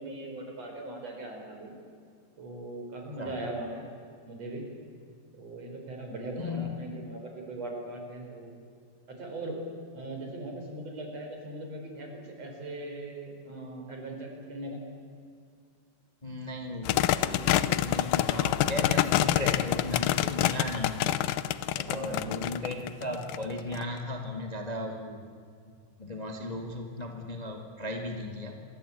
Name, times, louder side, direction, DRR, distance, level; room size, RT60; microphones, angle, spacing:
voice 1, 0.0-1.7 2.4-3.8 4.2-4.6 5.3-8.5 9.1-9.6 9.9-14.8 21.9-22.3 25.1-25.2, right 2 dB, 40° right, 2 dB, 5.5 m, -39 dB
voice 2, 6.4-6.7 16.2-21.2 21.8-25.3 25.6-28.6, left 2 dB, 50° left, 2 dB, 0.5 m, -36 dB
sound 1, 16.9-23.8, left 13 dB, 75° left, 2.1 m, -27 dB
26.0 x 23.5 x 8.6 m, 2.3 s
omnidirectional pair, 4.9 m